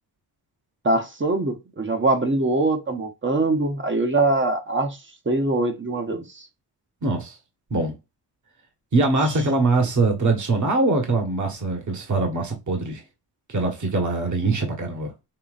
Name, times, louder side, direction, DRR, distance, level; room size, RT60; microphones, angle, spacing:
voice 1, 0.8-5.0 5.3-6.5, right 2 dB, 30° right, 1.0 m, -23 dB
voice 2, 7.0-7.4 7.7-7.9 8.9-13.0 13.5-15.1, right 3 dB, 45° right, 1.5 m, -22 dB
5.7 x 3.1 x 2.5 m
cardioid pair, 90°, 40 cm